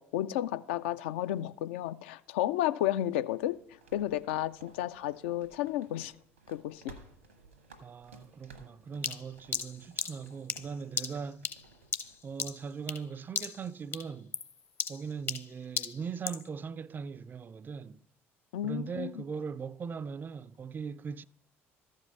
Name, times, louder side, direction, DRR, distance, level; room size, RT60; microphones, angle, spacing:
voice 1, 0.0-3.6 3.9-6.1 6.5-7.0 18.5-19.2, left 13 dB, 70° left, 0.4 m, -32 dB
sound 1, 3.4-12.2, right 4 dB, 85° right, 1.1 m, -57 dB
voice 2, 7.8-11.5 12.2-14.4 14.9-18.0 18.6-21.2, right 6 dB, 30° right, 0.3 m, -40 dB
sound 2, 9.0-13.1 13.3-13.7 13.9-16.5, left 5 dB, 35° left, 0.7 m, -36 dB
13.5 x 5.2 x 5.3 m
figure-of-eight pair, 55°, 7 cm